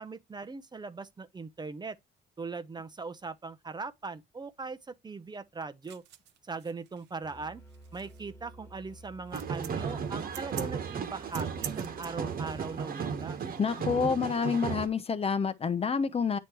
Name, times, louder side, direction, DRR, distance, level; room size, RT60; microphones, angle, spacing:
voice 1, 0.0-2.0 2.4-6.0 6.4-7.6 7.9-13.4, right 4 dB, 25° right, 0.7 m, -40 dB
sound 1, 5.8-12.1, right 12 dB, 85° right, 0.7 m, -46 dB
Musical instrument, 7.2-12.9, right 2 dB, 15° left, 1.5 m, -52 dB
sound 2, 9.3-14.9, right 6 dB, 60° right, 1.3 m, -35 dB
voice 2, 13.6-16.4, left 6 dB, 35° left, 0.7 m, -28 dB
9.0 x 3.1 x 4.5 m
cardioid pair, 95°, 17 cm